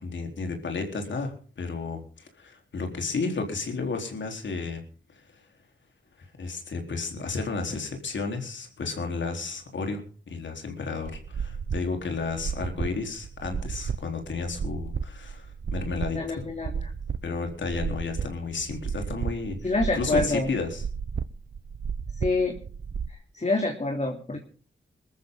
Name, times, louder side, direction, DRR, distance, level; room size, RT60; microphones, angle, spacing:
voice 1, 0.0-4.8 5.1-5.2 6.4-16.5 17.2-20.8, left 4 dB, 70° left, 4 dB, 4.0 m, -32 dB
sound 1, 11.0-23.1, right 6 dB, 60° right, 1.0 m, -33 dB
voice 2, 16.2-16.9 19.6-20.5 22.2-22.6 23.3-24.4, left 2 dB, 35° left, 3 dB, 3.1 m, -26 dB
21.5 x 14.0 x 3.9 m, 0.40 s
supercardioid pair, 40°, 20 cm